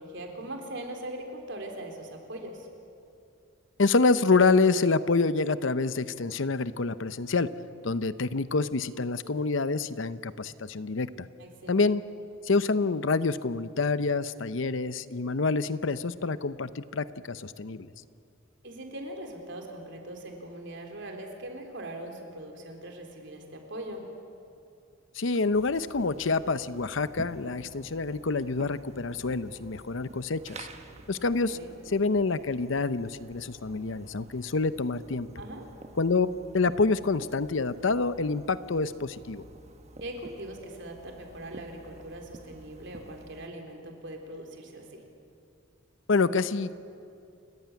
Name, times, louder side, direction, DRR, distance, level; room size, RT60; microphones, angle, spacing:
voice 1, 0.0-2.7 11.4-11.7 18.6-24.1 31.5-31.8 35.4-35.7 40.0-45.0, right 1 dB, 60° right, 2 dB, 3.8 m, -41 dB
voice 2, 3.8-7.5 7.8-11.3 11.7-12.0 12.4-17.9 25.1-30.7 31.1-31.6 31.9-35.3 36.0-36.3 36.5-39.4 46.1-46.7, left 3 dB, 65° left, 14 dB, 0.7 m, -27 dB
sound 1, 25.5-43.5, right 2 dB, 35° right, 1.2 m, -50 dB
29.0 x 15.0 x 9.5 m, 2.6 s
head